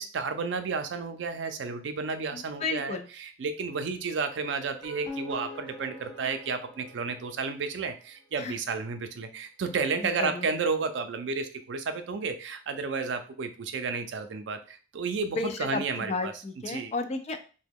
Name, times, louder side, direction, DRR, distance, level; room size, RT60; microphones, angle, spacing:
voice 1, 0.0-16.3 16.7-16.9, right 4 dB, 75° right, 8 dB, 0.4 m, -32 dB
voice 2, 2.3-3.0 8.4-8.5 10.0-10.5 15.4-17.4, left 3 dB, 35° left, 7 dB, 0.3 m, -33 dB
sound 1, 4.6-7.8, left 2 dB, ahead, 1.3 m, -43 dB
2.9 x 2.1 x 3.5 m, 0.37 s
head